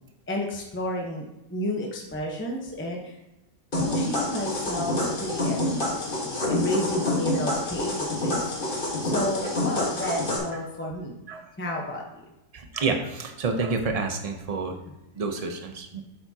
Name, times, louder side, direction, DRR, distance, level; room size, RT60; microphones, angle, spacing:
voice 1, 0.3-3.1 3.8-8.5 9.0-11.1 11.6-12.2 14.8-15.0, left 1 dB, 10° left, -1 dB, 0.8 m, -31 dB
sound 1, 3.7-10.4, left 1 dB, 35° left, 1.6 m, -27 dB
voice 2, 12.5-14.8 15.2-16.0, right 4 dB, 35° right, 5 dB, 0.7 m, -29 dB
8.5 x 6.9 x 2.9 m, 0.97 s
omnidirectional pair, 1.5 m